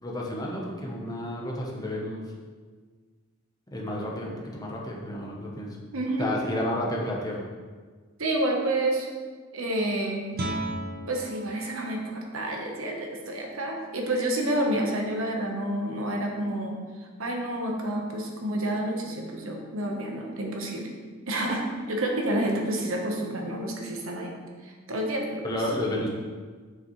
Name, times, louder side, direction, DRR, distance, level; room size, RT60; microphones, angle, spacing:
voice 1, 0.0-2.3 3.7-5.8 6.2-7.5 25.4-26.1, left 1 dB, 20° left, -2 dB, 0.9 m, -31 dB
voice 2, 5.9-6.3 8.2-9.1 9.5-10.3 11.1-16.8 17.2-20.9 21.3-24.3 24.6-25.4, right 1 dB, 80° right, 1 dB, 1.1 m, -29 dB
Guitar, 10.3-15.9, right 1 dB, 50° right, 0.7 m, -39 dB
7.4 x 5.9 x 3.2 m, 1.5 s
head